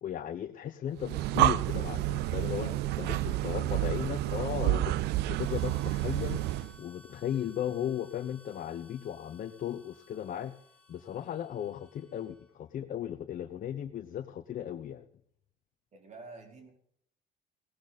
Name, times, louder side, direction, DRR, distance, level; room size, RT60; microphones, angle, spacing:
voice 1, 0.0-5.0 5.3-6.4 6.8-10.5 10.9-15.0, left 10 dB, 50° left, 7 dB, 1.0 m, -36 dB
Breathing, 1.0-6.8, right 16 dB, 80° right, 0.5 m, -29 dB
voice 2, 2.7-3.3 15.9-16.7, right 3 dB, 45° right, 3 dB, 4.5 m, -50 dB
Harmonica, 5.4-12.6, left 1 dB, 5° left, 4.3 m, -58 dB
17.0 x 13.0 x 4.2 m, 0.65 s
cardioid pair, 110°, 17 cm